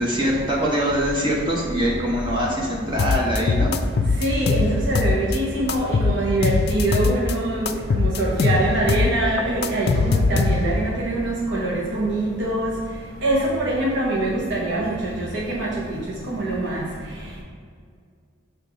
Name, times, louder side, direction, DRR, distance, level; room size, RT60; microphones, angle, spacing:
voice 1, 0.0-3.7, equal, 20° right, -3 dB, 0.8 m, -23 dB
sound 1, 3.0-5.4 5.7-7.3 7.7-10.9, left 4 dB, 50° left, 0.4 m, -21 dB
voice 2, 4.2-12.8 13.2-16.0 16.3-16.8, right 1 dB, 55° right, -5 dB, 0.9 m, -24 dB
6.5 x 3.4 x 5.0 m, 2.1 s
head